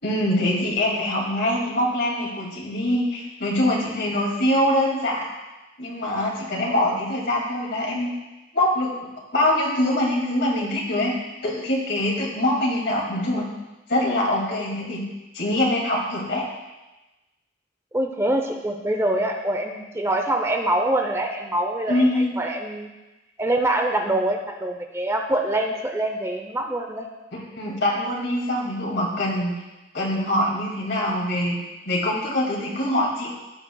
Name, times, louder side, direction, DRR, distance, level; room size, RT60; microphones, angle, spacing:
voice 1, 0.0-5.3 5.8-8.1 8.5-8.9 9.3-11.1 11.4-13.4 13.9-15.0 15.3-16.5 21.9-22.3 27.6-29.5 29.9-31.6 31.9-33.3, left 1 dB, 65° left, -2 dB, 2.3 m, -23 dB
voice 2, 17.9-22.9 23.4-27.1, right 1 dB, 15° right, 3 dB, 0.7 m, -24 dB
15.5 x 7.3 x 2.3 m, 1.1 s
head